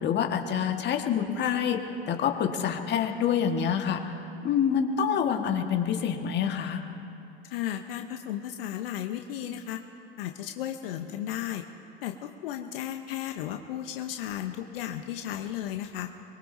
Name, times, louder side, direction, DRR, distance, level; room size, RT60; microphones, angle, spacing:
voice 1, 0.0-4.2 4.4-6.8, left 8 dB, 35° left, 3 dB, 1.6 m, -27 dB
voice 2, 7.4-9.8 10.2-11.6 12.0-16.1, left 11 dB, 70° left, 4 dB, 0.9 m, -34 dB
24.0 x 22.0 x 2.7 m, 2.9 s
hypercardioid pair, 90°, 30 cm